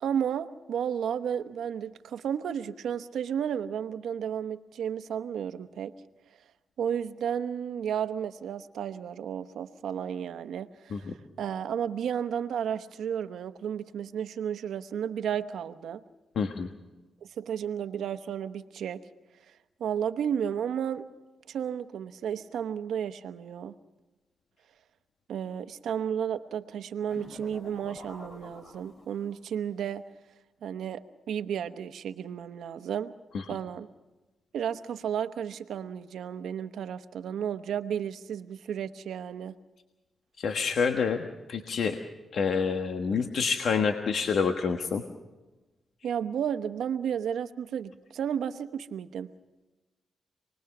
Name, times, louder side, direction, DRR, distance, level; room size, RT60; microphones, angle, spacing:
voice 1, 0.0-5.9 6.8-16.0 17.4-19.0 19.8-21.1 21.5-23.7 25.3-30.0 30.6-33.1 33.5-33.9 34.5-39.5 43.1-43.2 46.0-49.3, right 8 dB, 85° right, 10 dB, 1.0 m, -33 dB
voice 2, 16.3-16.7 40.4-41.2 41.5-42.0 42.3-45.0, left 5 dB, 75° left, 5 dB, 1.4 m, -27 dB
sound 1, 27.1-29.5, left 2 dB, 50° left, 5.8 m, -47 dB
28.0 x 20.5 x 6.0 m, 1.1 s
cardioid pair, 75°, 0 cm